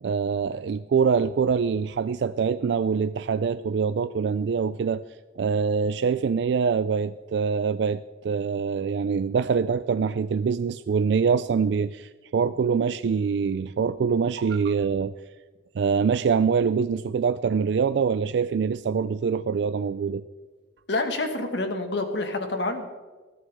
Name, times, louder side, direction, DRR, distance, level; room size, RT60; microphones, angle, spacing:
voice 1, 0.0-5.0 5.4-15.1 15.8-20.2, right 6 dB, 70° right, 13 dB, 0.3 m, -24 dB
voice 2, 20.9-22.9, left 2 dB, 70° left, 6 dB, 1.7 m, -28 dB
20.0 x 13.0 x 3.6 m, 1.3 s
head